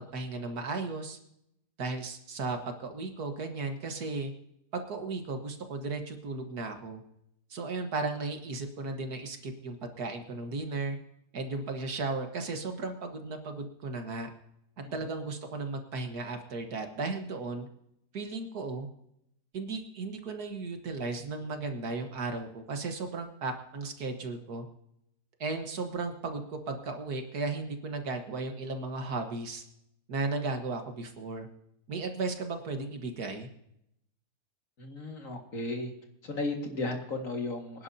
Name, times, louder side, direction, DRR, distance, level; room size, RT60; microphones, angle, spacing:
voice 1, 0.1-1.2 1.8-4.3 4.7-7.0 7.5-11.0 11.3-14.3 14.9-17.7 18.1-18.9 19.5-24.7 25.4-29.6 30.1-31.5 31.9-33.5, right 3 dB, 65° right, 5 dB, 2.0 m, -35 dB
voice 2, 34.8-35.9 36.2-37.8, left 2 dB, 55° left, 3 dB, 2.3 m, -35 dB
25.5 x 10.5 x 2.8 m, 0.77 s
omnidirectional pair, 1.8 m